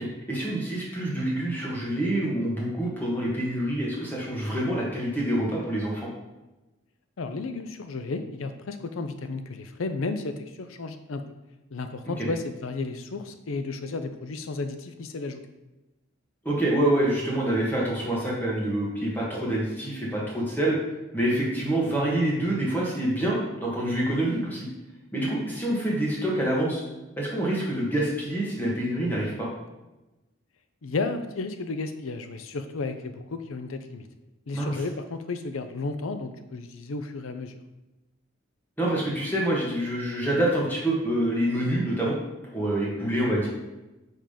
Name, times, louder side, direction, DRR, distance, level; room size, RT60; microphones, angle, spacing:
voice 1, 0.0-6.0 12.1-12.3 16.4-20.8 21.1-24.6 25.1-26.8 27.2-29.5 34.5-34.8 38.8-42.1 42.5-43.5, right 1 dB, 10° left, -5 dB, 1.6 m, -26 dB
voice 2, 7.2-11.2 11.7-15.4 30.8-34.1 34.5-37.6, left 3 dB, 85° left, 9 dB, 0.6 m, -33 dB
5.3 x 3.7 x 5.1 m, 1.0 s
head